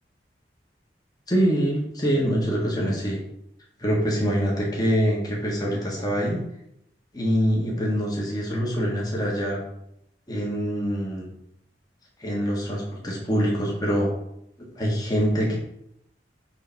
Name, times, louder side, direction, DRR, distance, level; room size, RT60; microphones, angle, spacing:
voice 1, 1.3-3.2 3.8-6.4 7.1-9.6 10.3-11.3 12.2-14.1 14.7-15.6, equal, 20° left, -4 dB, 1.4 m, -24 dB
6.6 x 3.3 x 5.8 m, 0.78 s
head